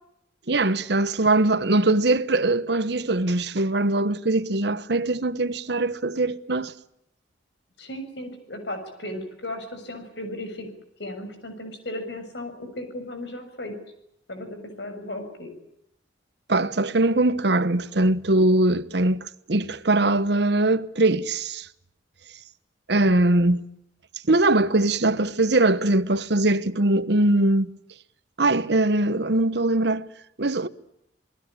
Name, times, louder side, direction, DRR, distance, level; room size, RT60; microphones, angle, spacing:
voice 1, 0.5-6.7 16.5-21.7 22.9-23.6 24.3-27.7 28.4-30.1 30.4-30.7, right 2 dB, 60° right, 1.2 m, -21 dB
voice 2, 7.8-10.7 11.0-13.7 14.3-15.5, left 1 dB, 65° left, 6.8 m, -35 dB
28.5 x 19.5 x 8.7 m
head